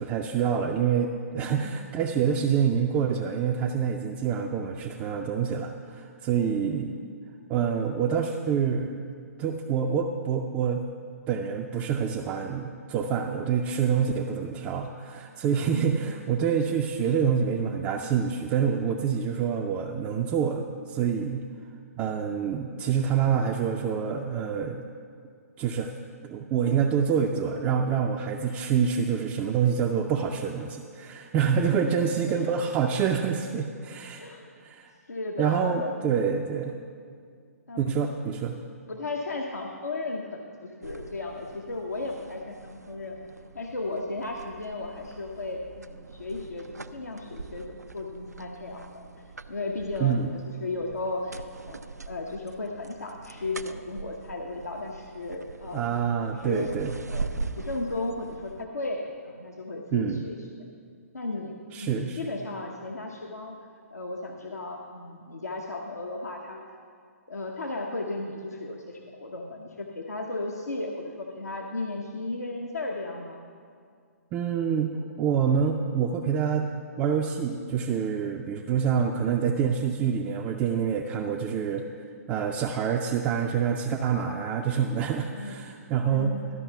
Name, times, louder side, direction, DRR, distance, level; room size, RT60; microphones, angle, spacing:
voice 1, 0.0-6.9 7.5-9.1 9.4-10.8 11.3-21.4 22.0-24.8 25.6-25.9 26.2-34.2 34.6-34.9 35.4-36.7 37.8-38.6 50.0-50.3 55.7-56.9 59.9-60.3 61.7-62.2 74.3-74.9 75.2-76.7 77.0-81.8 82.3-86.3, right 7 dB, 20° right, 2 dB, 0.4 m, -26 dB
voice 2, 1.4-1.9 6.5-6.9 15.7-16.0 31.7-31.9 32.2-32.4 34.2-34.5 35.1-36.1 37.7-37.9 38.9-43.2 43.5-46.7 46.9-49.0 49.5-56.7 57.1-57.3 57.6-60.4 61.1-63.6 63.9-66.6 67.3-73.4 85.3-85.6 86.1-86.5, left 2 dB, 75° left, 1 dB, 0.9 m, -35 dB
sound 1, 40.8-58.7, right 3 dB, 85° right, 0.4 m, -42 dB
12.5 x 5.6 x 6.8 m, 2.2 s
figure-of-eight pair, 125°, 9 cm